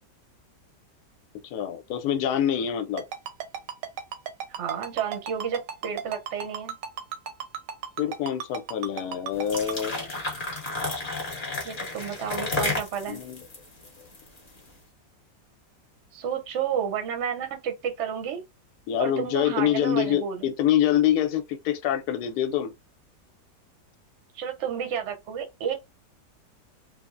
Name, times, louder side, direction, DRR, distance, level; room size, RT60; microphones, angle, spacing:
voice 1, 1.5-3.0 8.0-10.1 13.1-13.4 18.9-22.7, left 10 dB, 70° left, 1.1 m, -25 dB
Ringtone, 3.0-9.7, right 8 dB, 85° right, 1.2 m, -34 dB
voice 2, 4.5-6.8 11.6-13.2 16.1-18.4 19.0-20.5 24.3-25.7, right 8 dB, 60° right, 0.8 m, -31 dB
sound 1, 9.3-14.6, left 3 dB, 35° left, 0.9 m, -32 dB
3.3 x 2.0 x 2.4 m
omnidirectional pair, 1.9 m